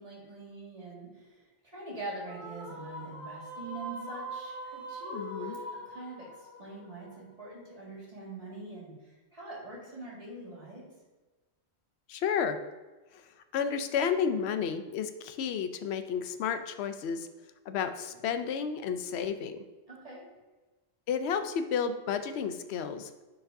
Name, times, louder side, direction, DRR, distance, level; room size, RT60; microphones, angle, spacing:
voice 1, 0.0-10.9 19.9-20.2, right 2 dB, 35° right, -5 dB, 2.0 m, -44 dB
sound 1, 2.3-7.7, right 1 dB, 75° right, 2.1 m, -43 dB
voice 2, 5.1-5.6 12.1-12.6 13.1-13.2 13.5-17.3 17.7-19.6 21.1-23.1, left 7 dB, 75° left, 9 dB, 0.8 m, -31 dB
9.5 x 4.8 x 2.6 m, 1.2 s
omnidirectional pair, 1.1 m